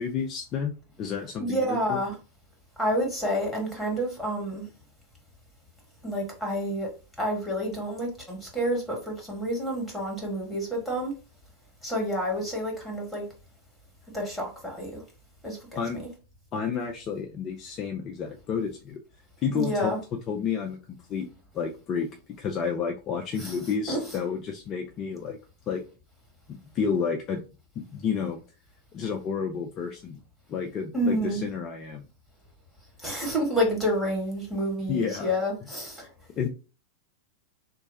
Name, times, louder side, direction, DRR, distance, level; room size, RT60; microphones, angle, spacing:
voice 1, 0.0-2.0 15.8-16.0 16.5-19.0 19.4-19.9 20.3-21.3 21.5-22.1 22.4-25.4 25.7-25.8 26.5-27.4 27.9-28.4 28.9-30.2 30.5-32.0 34.9-35.3 36.4-36.5, left 6 dB, 30° left, 0.5 m, -30 dB
voice 2, 1.4-2.2 2.8-4.7 6.0-6.9 7.2-11.1 11.8-13.3 14.1-15.0 15.4-15.8 19.5-20.0 23.4-23.5 23.9-24.2 30.9-31.4 33.0-36.1, equal, ahead, 1.6 m, -29 dB
3.2 x 2.3 x 3.9 m
figure-of-eight pair, 90°, 0 cm